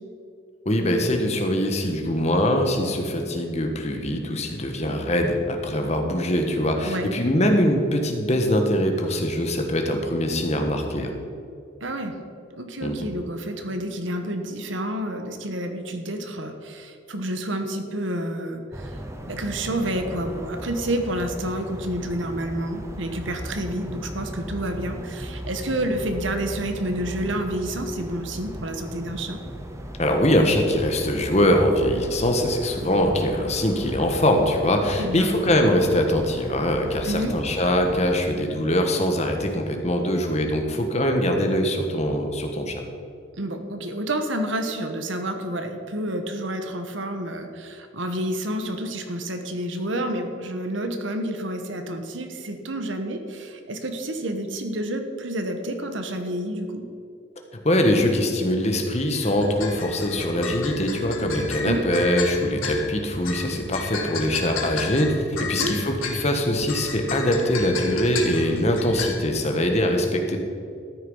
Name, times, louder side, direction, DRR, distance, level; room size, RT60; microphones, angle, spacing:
voice 1, 0.6-11.1 12.8-13.1 30.0-42.8 57.6-70.4, left 1 dB, 35° left, 4 dB, 1.4 m, -23 dB
voice 2, 11.8-12.2 12.5-19.0 19.3-29.4 35.0-35.3 37.1-37.3 43.4-56.8 61.6-61.8 65.4-65.8, right 1 dB, 70° right, 6 dB, 1.3 m, -29 dB
sound 1, 18.7-38.3, equal, 15° right, 0.9 m, -37 dB
sound 2, 59.2-69.2, left 4 dB, 90° left, 1.8 m, -33 dB
13.5 x 9.6 x 5.6 m, 2.5 s
head